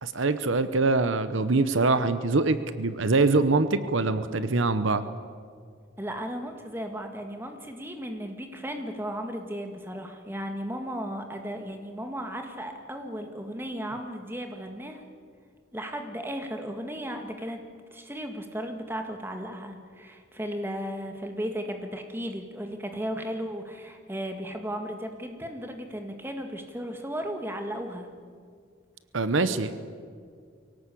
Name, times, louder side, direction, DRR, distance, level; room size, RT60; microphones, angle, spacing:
voice 1, 0.0-5.0 29.1-29.8, right 3 dB, 70° right, 12 dB, 0.9 m, -24 dB
voice 2, 6.0-15.0 15.7-17.6 17.9-28.1, equal, 10° right, 5 dB, 1.8 m, -35 dB
23.5 x 17.5 x 8.5 m, 2.1 s
head